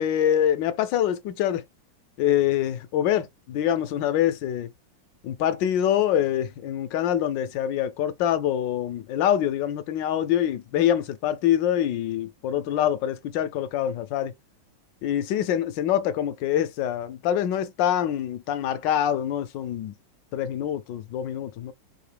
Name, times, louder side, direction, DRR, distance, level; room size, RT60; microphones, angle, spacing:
voice 1, 0.0-1.6 2.2-4.7 5.2-14.3 15.0-19.9 20.3-21.7, left 10 dB, 75° left, 1.3 m, -25 dB
4.7 x 2.7 x 3.3 m
omnidirectional pair, 2.1 m